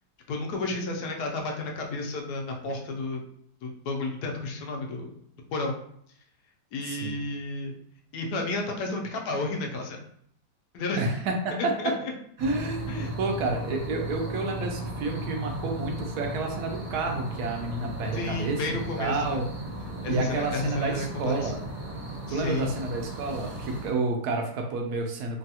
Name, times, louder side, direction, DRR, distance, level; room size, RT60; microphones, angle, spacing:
voice 1, 0.3-3.2 3.6-5.1 5.5-5.8 6.7-7.8 8.1-10.0 10.7-11.1 11.6-11.9 12.9-13.1 18.1-19.4 20.0-21.5 22.3-22.7, left 2 dB, 75° left, 1 dB, 1.1 m, -31 dB
voice 2, 6.8-7.2 11.0-11.3 11.6-12.0 12.4-19.5 20.1-21.6 22.3-25.4, right 3 dB, 75° right, 2 dB, 1.1 m, -30 dB
sound 1, 12.4-23.9, right 1 dB, 55° right, 1.3 m, -36 dB
3.2 x 2.2 x 2.7 m, 0.67 s
omnidirectional pair, 1.7 m